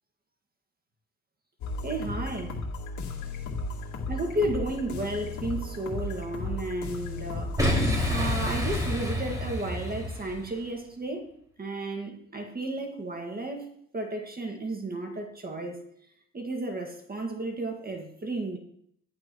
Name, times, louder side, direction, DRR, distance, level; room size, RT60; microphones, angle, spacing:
sound 1, 1.6-9.0, left 2 dB, 70° left, 2.2 m, -35 dB
voice 1, 1.8-2.6 4.1-7.6 8.1-11.3 11.6-15.8 16.3-18.6, right 1 dB, 30° right, 2 dB, 2.0 m, -33 dB
Boom, 7.6-10.5, equal, 10° right, 5.1 m, -28 dB
13.5 x 11.5 x 3.1 m, 0.68 s
cardioid pair, 90°, 30 cm